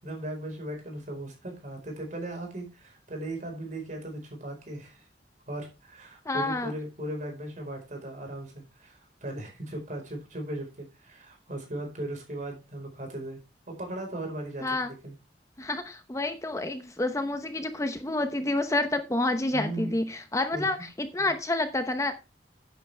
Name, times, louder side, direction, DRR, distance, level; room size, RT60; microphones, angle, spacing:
voice 1, 0.0-5.0 5.5-13.4 13.7-15.1 19.5-19.9 20.5-20.7, right 1 dB, 45° right, 2 dB, 4.6 m, -37 dB
voice 2, 6.2-6.7 14.6-14.9 15.6-22.2, left 2 dB, 20° left, 8 dB, 0.8 m, -29 dB
10.5 x 9.2 x 3.4 m, 0.28 s
head